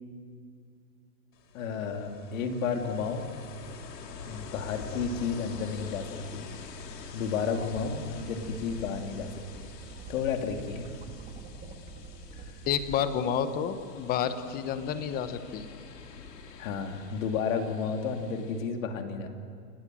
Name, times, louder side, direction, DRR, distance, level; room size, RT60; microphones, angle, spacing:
Ocean, 1.3-18.7, left 5 dB, 80° left, 2.7 m, -46 dB
voice 1, 1.5-3.3 4.2-6.5 7.1-9.6 10.1-10.9 12.4-12.5 16.6-19.3, left 5 dB, 55° left, 4 dB, 3.0 m, -32 dB
sound 1, 7.6-13.0, right 3 dB, 20° right, 1.9 m, -46 dB
voice 2, 12.7-15.7, left 8 dB, 20° left, 11 dB, 1.0 m, -30 dB
29.0 x 18.0 x 7.7 m, 2.1 s
hypercardioid pair, 145°, 48 cm